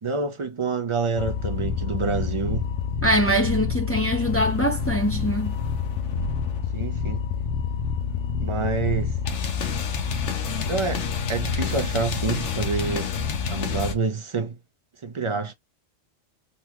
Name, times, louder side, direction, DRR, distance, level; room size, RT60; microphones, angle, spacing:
voice 1, 0.0-2.7 6.7-7.2 8.4-9.2 10.7-13.1 13.5-14.6 15.0-15.5, right 4 dB, 35° right, 0.5 m, -27 dB
sound 1, 1.2-13.9, left 6 dB, 75° left, 1.0 m, -27 dB
voice 2, 3.0-5.6, equal, 15° left, 0.7 m, -23 dB
3.8 x 2.2 x 3.0 m
omnidirectional pair, 1.3 m